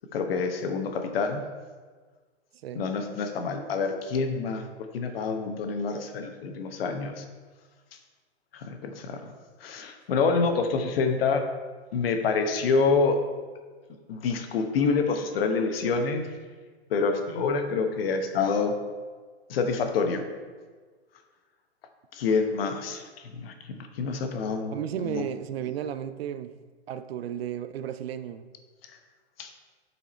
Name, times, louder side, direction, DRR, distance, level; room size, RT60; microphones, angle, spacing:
voice 1, 0.1-1.4 2.7-4.6 4.9-7.2 8.5-9.3 9.6-11.4 11.9-13.2 14.1-16.3 16.9-18.7 19.5-20.2 22.1-25.2 29.4-29.5, left 4 dB, 60° left, 5 dB, 1.1 m, -27 dB
voice 2, 24.7-26.5 26.9-28.4, right 9 dB, 65° right, 12 dB, 0.5 m, -33 dB
8.6 x 4.7 x 4.3 m, 1.4 s
hypercardioid pair, 140°, 33 cm